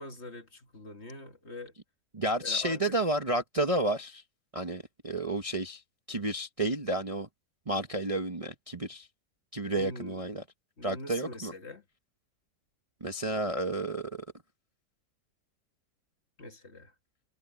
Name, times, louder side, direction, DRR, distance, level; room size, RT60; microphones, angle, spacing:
voice 1, 0.0-1.7 2.4-3.0 9.8-10.2 10.8-11.8 16.4-16.9, left 2 dB, 40° left, 2.0 m, -44 dB
voice 2, 2.1-4.2 4.5-5.8 6.1-7.3 7.7-9.1 9.5-10.4 10.8-11.5 13.0-14.2, right 1 dB, 25° right, 1.0 m, -31 dB
omnidirectional pair, 1.8 m